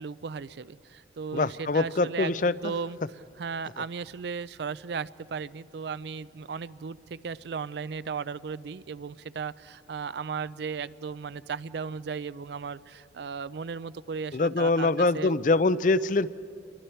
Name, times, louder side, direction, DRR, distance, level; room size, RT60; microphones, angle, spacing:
voice 1, 0.0-3.0 3.4-15.3, right 5 dB, 65° right, 17 dB, 0.4 m, -36 dB
voice 2, 1.3-2.7 14.3-16.3, left 3 dB, 45° left, 16 dB, 0.5 m, -24 dB
28.5 x 22.5 x 4.5 m, 2.4 s
head